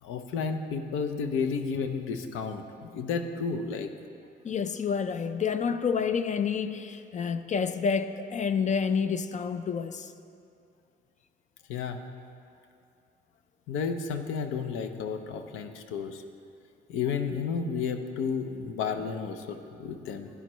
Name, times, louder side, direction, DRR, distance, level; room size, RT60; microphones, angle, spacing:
voice 1, 0.0-3.9 11.7-12.0 13.7-16.2 16.9-20.3, left 5 dB, 90° left, 0.7 m, -32 dB
voice 2, 4.4-10.1, left 6 dB, 40° left, 0.4 m, -29 dB
12.0 x 10.0 x 3.1 m
cardioid pair, 90°, 20 cm